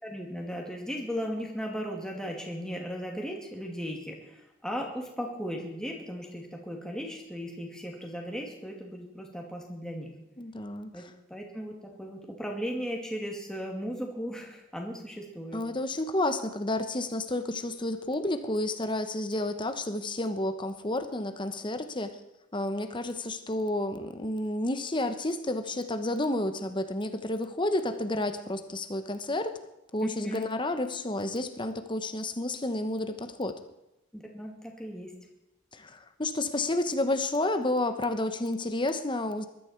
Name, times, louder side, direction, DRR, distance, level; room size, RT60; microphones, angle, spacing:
voice 1, 0.0-10.1 10.9-11.0 11.3-15.6 30.0-30.5 34.1-35.1, equal, 5° left, 0 dB, 2.6 m, -36 dB
voice 2, 10.4-11.1 15.5-22.2 22.5-29.6 29.9-33.6 35.7-39.5, left 1 dB, 25° left, 8 dB, 1.0 m, -30 dB
20.5 x 13.0 x 4.6 m, 0.89 s
head